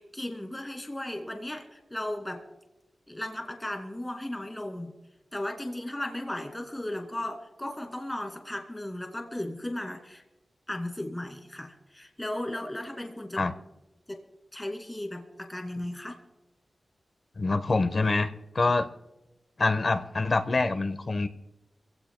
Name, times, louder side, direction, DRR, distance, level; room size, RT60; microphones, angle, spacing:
voice 1, 0.0-2.4 3.1-4.9 5.3-10.2 10.7-13.4 14.1-14.2 14.5-16.2, left 1 dB, 15° left, 2 dB, 2.5 m, -36 dB
voice 2, 17.4-18.9 19.6-21.3, left 3 dB, 45° left, 9 dB, 1.0 m, -26 dB
26.5 x 17.0 x 2.2 m, 0.99 s
wide cardioid pair, 105°, 0 cm